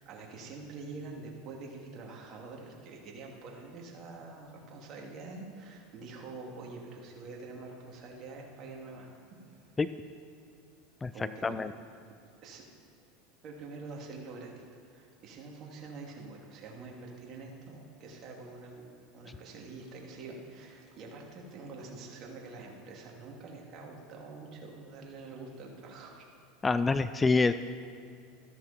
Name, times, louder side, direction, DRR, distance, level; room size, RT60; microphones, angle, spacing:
voice 1, 0.0-9.1 9.5-9.8 11.1-11.5 12.4-12.7 13.4-14.5 14.9-18.9 19.1-26.2, right 3 dB, 45° right, -1 dB, 2.7 m, -46 dB
voice 2, 11.0-11.7 26.6-27.5, left 3 dB, 15° left, 13 dB, 0.4 m, -27 dB
14.0 x 13.0 x 4.4 m, 2.4 s
hypercardioid pair, 95°, 0 cm